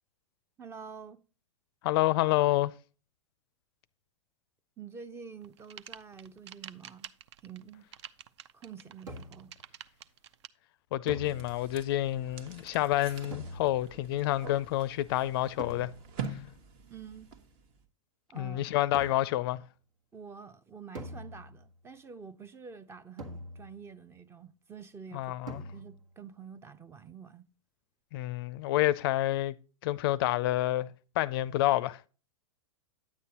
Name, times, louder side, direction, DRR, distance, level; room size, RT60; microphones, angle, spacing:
voice 1, 0.6-1.2 4.8-7.1 7.4-7.9 8.5-9.5 16.9-17.3 18.3-18.8 20.1-25.3 25.7-27.5, right 6 dB, 15° right, 0.5 m, -47 dB
voice 2, 1.8-2.7 10.9-15.9 18.3-19.6 25.1-25.6 28.1-29.5 29.8-32.0, left 15 dB, 50° left, 0.4 m, -28 dB
sound 1, 5.4-10.5, right 10 dB, 60° right, 0.5 m, -48 dB
sound 2, 9.1-9.6 11.1-11.9 13.3-14.1 15.6-16.3 18.9-19.5 21.0-21.8 23.2-24.0 25.5-26.2, equal, 85° right, 1.7 m, -44 dB
sound 3, 11.2-17.8, right 5 dB, 45° right, 1.1 m, -45 dB
9.5 x 8.1 x 2.8 m
hypercardioid pair, 110°, 16 cm